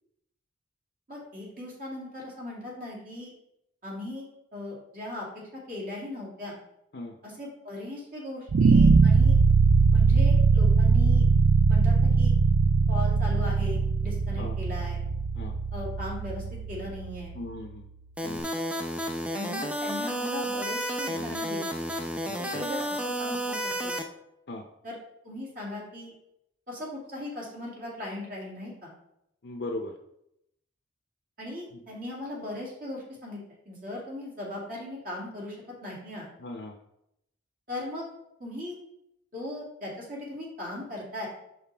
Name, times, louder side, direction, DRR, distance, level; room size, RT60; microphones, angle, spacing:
voice 1, 1.1-3.3 3.8-5.3 5.7-6.5 7.2-9.4 9.9-11.3 11.7-12.3 12.9-15.0 15.7-17.3 19.3-21.7 22.4-24.0 24.8-25.0 25.2-26.1 26.7-28.9 31.4-33.4 33.7-36.3 37.7-38.0 38.4-38.8 39.3-41.3, left 1 dB, 45° right, -4 dB, 2.5 m, -38 dB
sound 1, 8.5-17.6, right 4 dB, 65° right, 0.4 m, -21 dB
voice 2, 17.3-17.8 18.2-18.5 22.3-22.6 24.5-24.6 29.4-29.9 36.4-36.7, left 2 dB, 60° left, 2 dB, 0.6 m, -38 dB
sound 2, 18.2-24.0, right 1 dB, 5° right, 0.5 m, -31 dB
6.4 x 5.9 x 3.4 m, 0.80 s
head